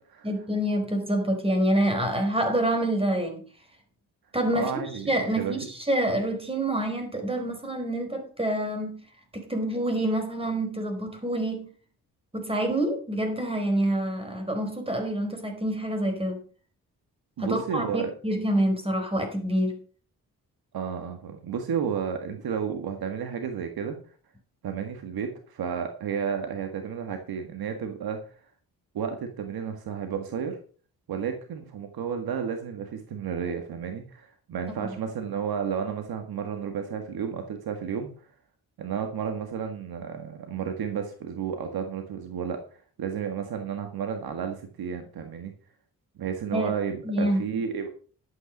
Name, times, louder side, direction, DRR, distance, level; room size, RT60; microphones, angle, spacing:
voice 1, 0.2-3.4 4.3-4.7 5.1-9.0 9.3-11.7 12.3-16.4 17.4-19.8 34.7-34.9 46.5-46.7 47.0-47.4, right 1 dB, 15° right, 5 dB, 4.7 m, -27 dB
voice 2, 4.5-5.6 17.4-18.1 20.7-24.0 24.6-28.4 28.9-30.6 31.1-38.3 38.8-45.5 46.2-47.9, right 7 dB, 75° right, 5 dB, 1.8 m, -32 dB
12.0 x 8.5 x 5.3 m, 0.41 s
cardioid pair, 80°, 37 cm